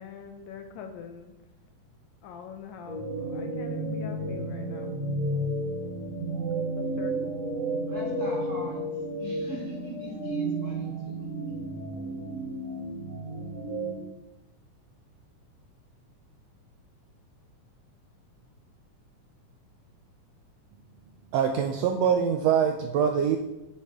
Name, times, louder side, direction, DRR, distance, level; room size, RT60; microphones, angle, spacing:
voice 1, 0.0-1.3 2.2-4.9 6.8-7.3, left 6 dB, 75° left, 6 dB, 1.9 m, -44 dB
sound 1, 2.9-13.9, right 1 dB, 60° right, 2.6 m, -32 dB
voice 2, 7.9-8.8 9.2-11.6, right 1 dB, 35° right, -4 dB, 2.2 m, -41 dB
voice 3, 21.3-23.4, right 7 dB, 90° right, 5 dB, 1.5 m, -24 dB
9.4 x 6.3 x 3.6 m, 0.94 s
omnidirectional pair, 3.6 m